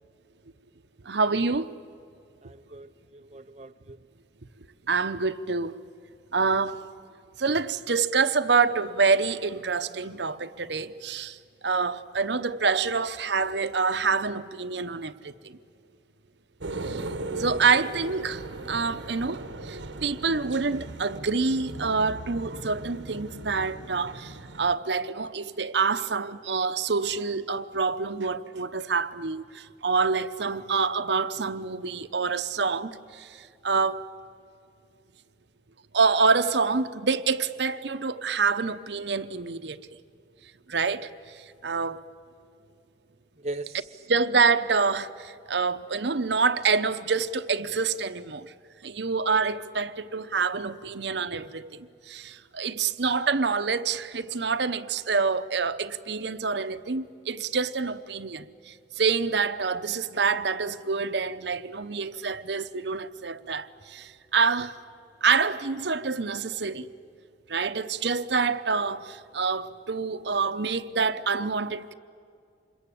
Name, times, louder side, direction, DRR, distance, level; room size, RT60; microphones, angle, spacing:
voice 1, 1.0-1.7 4.9-5.8 6.3-6.8 7.4-11.4 11.6-15.6 16.8-17.1 17.3-34.0 35.9-39.8 40.7-42.0 44.1-48.5 48.8-51.7 52.1-64.8 65.2-66.9 67.5-71.9, right 4 dB, 70° right, 0.9 m, -27 dB
voice 2, 2.4-4.0 43.4-44.0, right 2 dB, 35° right, 0.6 m, -39 dB
sound 1, 16.6-24.8, right 2 dB, 90° right, 1.2 m, -38 dB
26.5 x 22.0 x 8.5 m
head